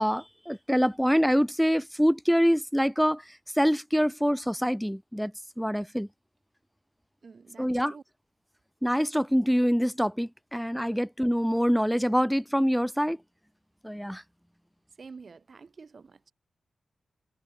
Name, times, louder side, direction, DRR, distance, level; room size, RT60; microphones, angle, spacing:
voice 1, 0.0-3.2 3.6-5.3 5.6-6.1 7.6-7.9 8.8-13.2 13.8-14.2, equal, ahead, 0.4 m, -25 dB
voice 2, 7.2-8.0 10.9-11.0 15.0-16.3, right 4 dB, 50° right, 1.9 m, -48 dB
open air
wide cardioid pair, 105°, 0 cm